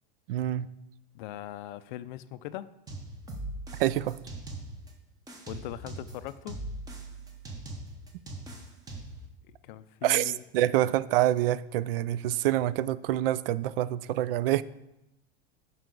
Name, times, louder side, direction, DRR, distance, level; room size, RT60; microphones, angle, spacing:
voice 1, 0.3-0.7 3.8-4.2 10.0-14.6, right 13 dB, 65° right, 17 dB, 0.4 m, -26 dB
voice 2, 1.1-2.7 5.5-6.6 9.4-10.4, left 14 dB, 50° left, 15 dB, 0.4 m, -40 dB
sound 1, 2.9-4.9 5.3-9.3, right 2 dB, 10° right, 1.0 m, -40 dB
9.3 x 5.7 x 3.9 m, 0.91 s
supercardioid pair, 160°, 31 cm